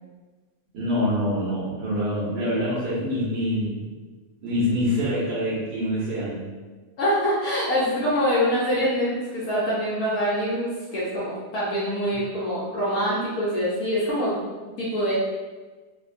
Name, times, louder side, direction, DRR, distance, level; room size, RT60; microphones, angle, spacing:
voice 1, 0.7-3.9 4.4-6.4, equal, 80° right, -8 dB, 1.6 m, -25 dB
voice 2, 7.0-14.3 14.8-15.1, equal, 70° left, -8 dB, 1.1 m, -25 dB
3.5 x 2.2 x 2.5 m, 1.3 s
omnidirectional pair, 1.8 m